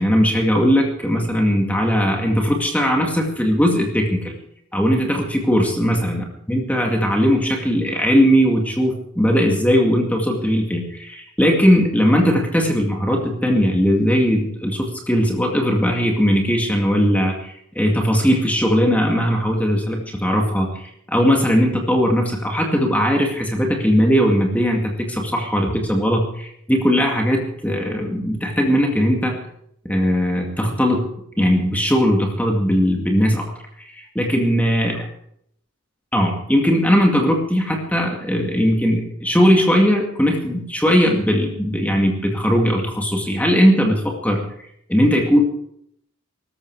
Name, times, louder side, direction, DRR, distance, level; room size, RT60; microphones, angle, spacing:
voice 1, 0.0-4.3 4.7-29.4 29.8-31.0 31.4-33.4 33.8-35.1 36.1-44.4 44.9-45.4, equal, 5° left, 0 dB, 2.2 m, -19 dB
18.5 x 14.5 x 4.8 m, 0.71 s
head